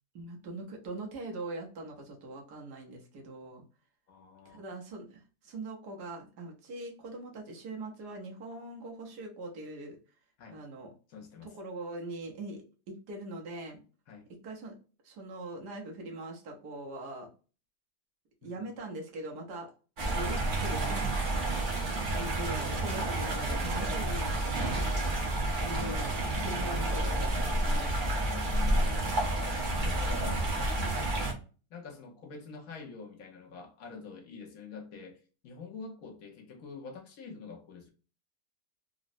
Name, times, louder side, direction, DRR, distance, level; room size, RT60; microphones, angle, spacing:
voice 1, 0.1-3.6 4.4-10.0 10.5-10.9 11.4-13.8 14.4-14.8 15.0-17.3 18.4-19.7 20.1-21.3 21.6-24.8 25.6-27.9, right 2 dB, 75° right, 1.5 m, -42 dB
voice 2, 4.1-4.6 10.4-10.6 11.1-11.5 14.1-14.3 18.4-18.7 20.4-20.5 25.6-26.1 28.2-29.1 29.8-30.5 31.7-37.9, left 5 dB, 65° left, 1.0 m, -46 dB
sound 1, 20.0-31.3, right 1 dB, 40° right, 0.7 m, -30 dB
3.8 x 2.0 x 2.5 m
omnidirectional pair, 1.7 m